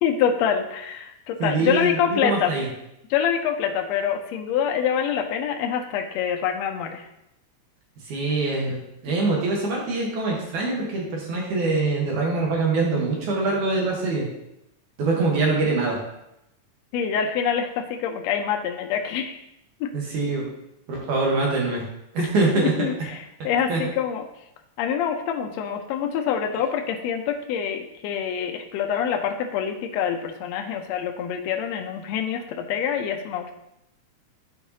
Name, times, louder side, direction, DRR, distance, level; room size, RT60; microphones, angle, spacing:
voice 1, 0.0-2.5 3.1-7.1 16.9-19.4 19.8-19.9 22.2-22.3 22.6-24.2 24.8-33.5, left 8 dB, 80° left, 3 dB, 1.5 m, -26 dB
voice 2, 1.4-2.7 8.1-8.8 9.0-14.3 15.0-16.0 19.9-20.5 20.9-21.8 22.1-22.9 23.7-23.8, right 3 dB, 80° right, -2 dB, 2.6 m, -24 dB
10.5 x 4.7 x 2.7 m, 0.85 s
omnidirectional pair, 3.6 m